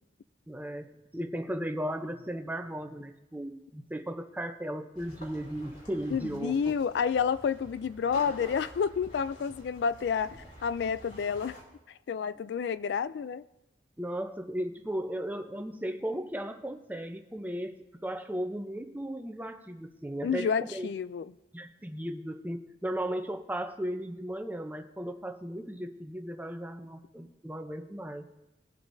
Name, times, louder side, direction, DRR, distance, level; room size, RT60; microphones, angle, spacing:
voice 1, 0.5-6.7 14.0-20.9 21.5-28.2, right 1 dB, 10° right, 0.7 m, -36 dB
sound 1, 4.9-11.6, equal, 50° left, 2.7 m, -49 dB
voice 2, 6.1-11.6 12.1-13.4 20.2-21.3, left 6 dB, 75° left, 0.3 m, -30 dB
20.0 x 8.0 x 2.7 m
head